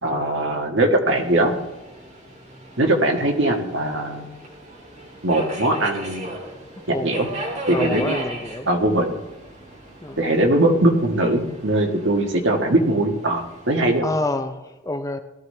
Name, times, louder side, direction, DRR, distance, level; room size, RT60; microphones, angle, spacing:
voice 1, 0.0-1.6 2.8-4.3 5.2-6.3 7.0-7.3 7.7-8.2 8.7-9.1 10.2-14.1, right 1 dB, 65° right, 2 dB, 1.5 m, -20 dB
Subway metro underground, 1.2-14.0, right 1 dB, 35° right, 3.2 m, -37 dB
voice 2, 6.9-7.4 7.7-8.7 10.0-10.2 14.0-15.2, left 2 dB, 15° left, 8 dB, 0.4 m, -28 dB
18.5 x 13.0 x 3.3 m, 1.1 s
head